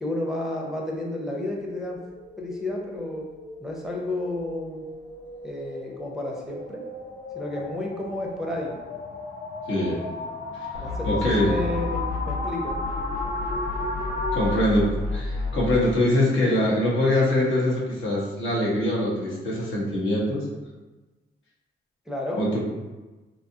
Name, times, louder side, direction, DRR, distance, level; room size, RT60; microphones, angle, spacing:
voice 1, 0.0-2.0 2.4-3.2 3.6-4.8 5.4-6.8 7.3-8.8 10.8-12.8 22.1-22.6, left 2 dB, ahead, -2 dB, 0.6 m, -31 dB
sound 1, 1.5-14.7, left 2 dB, 40° left, 0.6 m, -35 dB
voice 2, 9.7-10.0 11.0-11.6 14.3-20.5 22.4-22.6, left 1 dB, 65° left, -5 dB, 0.9 m, -23 dB
sound 2, 10.7-12.4 12.7-15.8, left 3 dB, 85° left, 0.6 m, -31 dB
2.7 x 2.3 x 2.7 m, 1.2 s
supercardioid pair, 50°, 21 cm